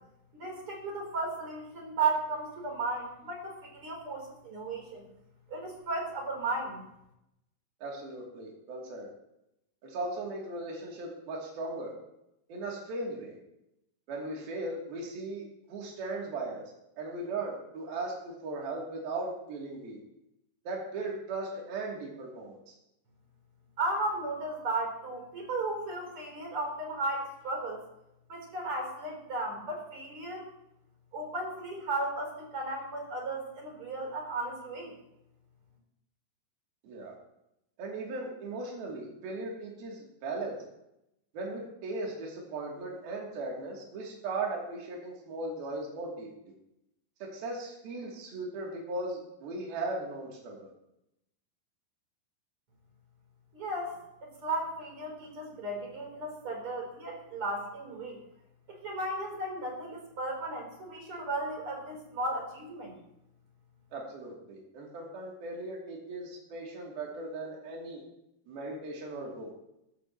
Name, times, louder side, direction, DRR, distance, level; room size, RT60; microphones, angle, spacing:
voice 1, 0.4-5.0 5.5-6.8 23.8-27.8 28.3-30.5 31.1-34.9 53.5-58.2 58.7-62.9, right 2 dB, 35° right, 0 dB, 4.5 m, -35 dB
voice 2, 7.8-9.1 9.8-11.9 12.5-13.3 14.1-16.7 17.0-20.0 20.7-22.7 36.8-37.1 37.8-40.6 41.3-46.3 47.2-50.7 63.9-68.0 68.5-69.5, right 2 dB, 65° right, -2 dB, 4.7 m, -38 dB
17.0 x 14.0 x 3.1 m, 0.83 s
omnidirectional pair, 4.7 m